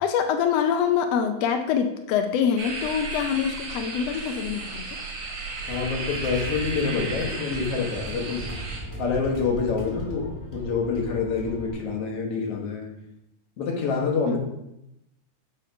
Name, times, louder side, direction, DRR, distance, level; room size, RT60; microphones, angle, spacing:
voice 1, 0.0-5.0 14.2-14.4, left 7 dB, 85° left, 6 dB, 1.4 m, -25 dB
sound 1, 2.6-8.8, right 3 dB, 55° right, 2.4 m, -34 dB
sound 2, 5.6-11.7, right 1 dB, 10° left, 1.5 m, -38 dB
voice 2, 5.7-8.5 9.0-12.9 13.6-14.4, left 5 dB, 55° left, 0 dB, 2.0 m, -27 dB
6.7 x 5.4 x 5.1 m, 0.84 s
omnidirectional pair, 3.6 m